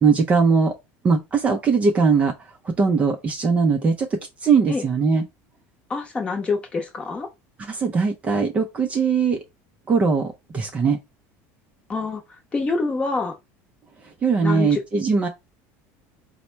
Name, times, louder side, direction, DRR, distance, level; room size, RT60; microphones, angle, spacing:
voice 1, 0.0-0.7 1.0-2.3 2.6-5.2 7.6-9.4 9.9-11.0 14.2-15.3, right 5 dB, 20° right, 0.5 m, -20 dB
voice 2, 5.9-7.3 11.9-12.2 12.5-13.3 14.4-14.8, left 3 dB, 15° left, 0.8 m, -26 dB
4.1 x 2.1 x 4.4 m
cardioid pair, 160°, 7 cm